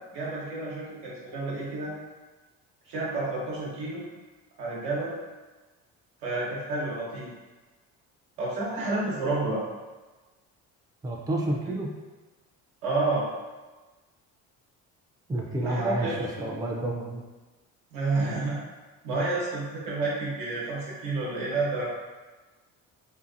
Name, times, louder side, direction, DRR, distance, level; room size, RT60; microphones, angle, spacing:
voice 1, 0.1-1.9 2.9-4.0 4.6-5.1 6.2-7.3 8.4-9.6 11.7-11.8 12.8-13.2 15.6-16.5 17.9-18.6 19.0-21.9, right 3 dB, 90° right, -5 dB, 1.0 m, -30 dB
voice 2, 11.0-11.9 15.3-16.1 16.4-17.2, right 1 dB, 10° right, -1 dB, 0.4 m, -29 dB
2.7 x 2.5 x 2.5 m, 1.2 s
supercardioid pair, 75°, 36 cm